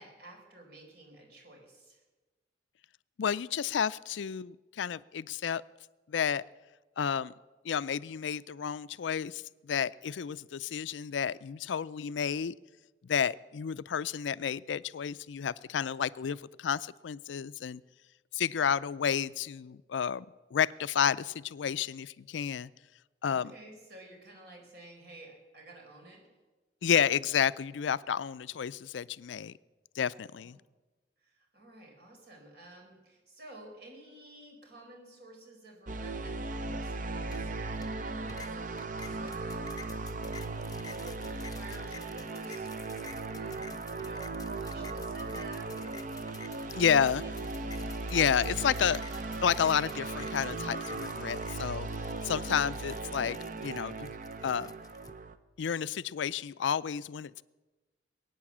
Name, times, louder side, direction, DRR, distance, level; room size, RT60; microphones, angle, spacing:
voice 1, 0.0-2.0 23.3-26.2 30.4-30.6 31.2-40.1 40.4-40.5 40.9-46.1 47.0-47.4, right 1 dB, 60° right, 2 dB, 4.4 m, -52 dB
voice 2, 3.2-5.6 6.1-6.4 7.0-7.3 7.6-12.6 13.0-17.8 18.3-22.7 23.2-23.5 26.8-29.5 29.9-30.6 46.8-47.2 48.1-49.0 49.4-54.1 54.4-54.7 55.6-57.4, left 7 dB, 80° left, 18 dB, 0.4 m, -31 dB
sound 1, 35.9-55.3, right 3 dB, 45° right, 0.7 m, -37 dB
sound 2, 37.3-38.0 38.3-55.1, left 5 dB, 20° left, 0.7 m, -51 dB
sound 3, 47.0-51.3, right 5 dB, 80° right, 1.5 m, -54 dB
21.0 x 9.2 x 7.3 m, 1.2 s
head